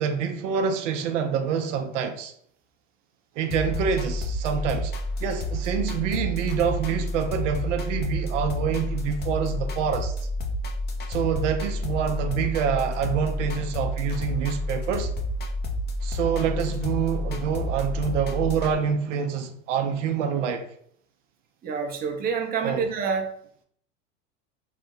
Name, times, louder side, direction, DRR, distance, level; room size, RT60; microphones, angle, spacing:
voice 1, 0.0-2.3 3.4-4.9 5.2-10.1 11.1-15.1 16.0-20.6 22.6-22.9, right 7 dB, 80° right, 0.6 m, -26 dB
sound 1, 3.5-18.7, left 1 dB, 30° left, 0.6 m, -30 dB
voice 2, 21.6-23.3, right 6 dB, 25° right, 0.6 m, -27 dB
3.2 x 2.1 x 3.6 m
hypercardioid pair, 105°, 37 cm